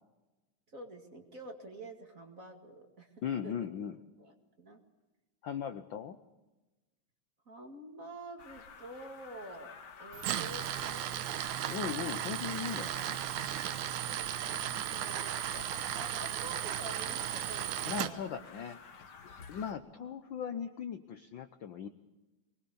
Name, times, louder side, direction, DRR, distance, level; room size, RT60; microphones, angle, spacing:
voice 1, 0.7-3.5 4.2-4.8 7.5-11.3 12.0-12.1 14.0-18.4 19.8-20.1, right 1 dB, 30° right, 4 dB, 2.2 m, -49 dB
voice 2, 3.2-4.0 5.4-6.2 11.7-13.2 17.9-18.8 19.5-21.9, left 8 dB, 80° left, 9 dB, 1.0 m, -38 dB
sound 1, 8.4-19.7, left 5 dB, 45° left, 1.7 m, -51 dB
Tools, 10.1-18.1, right 11 dB, 85° right, 2.4 m, -35 dB
24.0 x 20.0 x 7.0 m, 1.1 s
omnidirectional pair, 3.3 m